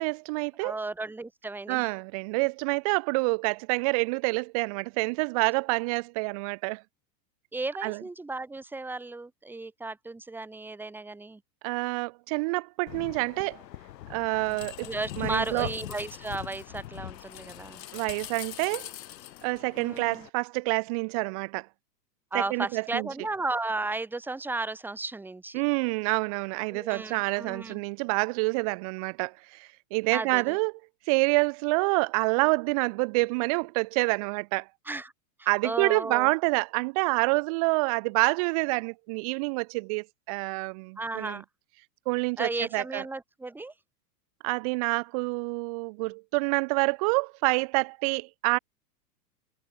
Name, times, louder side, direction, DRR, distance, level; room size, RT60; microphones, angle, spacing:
voice 1, 0.0-0.8 1.7-6.8 7.8-8.0 11.6-13.6 14.1-14.9 15.2-15.7 17.9-18.9 19.4-21.7 22.3-23.1 25.5-30.7 31.1-34.7 35.5-41.4 42.1-43.0 44.4-48.6, right 29 dB, 25° right, 0.5 m, -27 dB
voice 2, 0.6-1.9 7.5-11.4 14.8-17.8 19.8-20.3 22.3-25.6 26.7-27.8 30.1-30.6 34.9-35.1 35.4-36.3 41.0-41.5 42.4-43.7, right 2 dB, 5° right, 1.7 m, -34 dB
sound 1, 12.9-20.3, left 13 dB, 75° left, 6.1 m, -42 dB
supercardioid pair, 165°, 50 cm